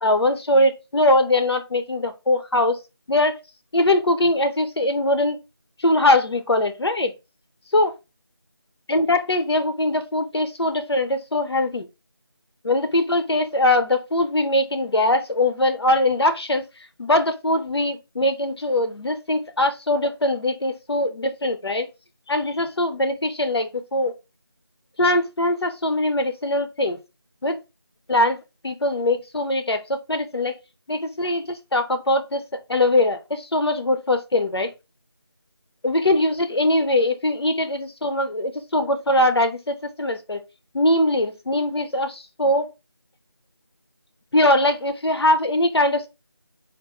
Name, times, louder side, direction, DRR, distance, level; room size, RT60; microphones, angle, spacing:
voice 1, 0.0-2.8 3.1-3.4 3.7-5.4 5.8-7.1 7.7-7.9 8.9-11.9 12.6-16.6 17.0-21.9 22.3-24.1 25.0-27.0 27.4-27.6 28.1-28.4 28.6-30.6 30.9-34.7 35.8-40.4 40.7-42.7 44.3-46.1, left 1 dB, 85° left, 0.6 m, -21 dB
3.6 x 2.0 x 2.9 m
figure-of-eight pair, 175°, 13 cm